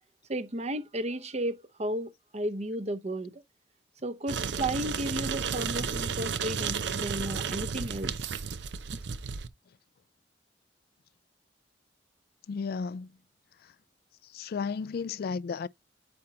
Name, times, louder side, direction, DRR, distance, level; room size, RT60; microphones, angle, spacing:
voice 1, 0.3-3.4 4.0-8.1, right 1 dB, 40° right, 0.8 m, -33 dB
sound 1, 4.3-9.5, right 6 dB, 75° right, 0.6 m, -33 dB
voice 2, 12.5-13.1 14.3-15.7, left 5 dB, 60° left, 0.3 m, -33 dB
8.7 x 5.7 x 2.8 m
head